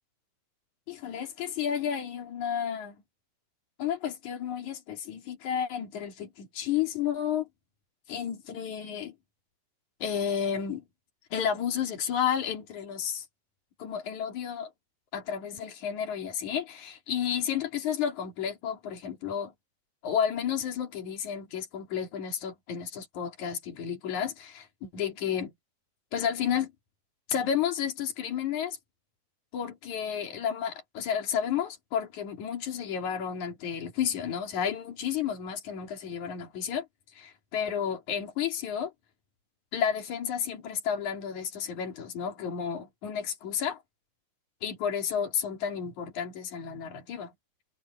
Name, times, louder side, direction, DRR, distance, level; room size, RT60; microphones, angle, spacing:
voice 1, 0.9-3.0 3.8-7.5 8.1-9.1 10.0-10.8 11.3-13.3 13.8-14.7 15.1-19.5 20.0-25.5 26.1-26.7 27.3-28.8 29.5-36.9 37.2-38.9 39.7-43.8 44.6-47.3, left 8 dB, 70° left, 4.2 m, -31 dB
omnidirectional pair, 3.5 m